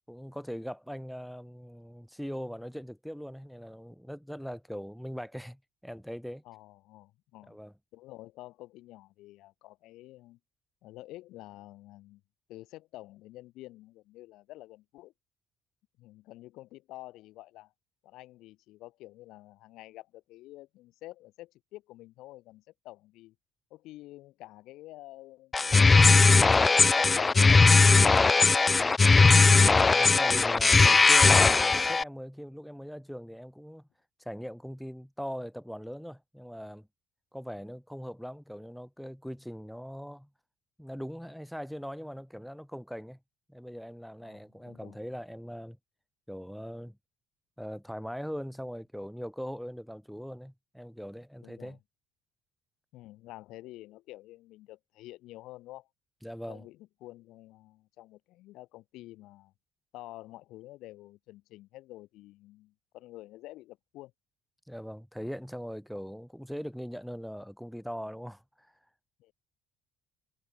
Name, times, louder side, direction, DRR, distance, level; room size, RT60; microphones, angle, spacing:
voice 1, 0.1-6.4 7.5-7.7 29.8-33.9 34.2-36.9 37.3-40.3 40.8-43.2 43.5-45.8 46.3-47.0 47.6-51.8 56.2-56.6 64.7-68.7, equal, ahead, 4.1 m, -40 dB
voice 2, 6.4-7.6 7.9-10.4 10.8-12.2 12.5-15.1 16.0-17.7 18.0-23.3 23.7-28.3 44.2-45.0 51.4-51.8 52.9-55.9 56.5-59.5 59.9-64.1 65.2-65.3 69.2-69.3, left 17 dB, 80° left, 4.9 m, -49 dB
sound 1, 25.5-32.0, left 4 dB, 25° left, 0.4 m, -19 dB
cardioid pair, 95°, 0 cm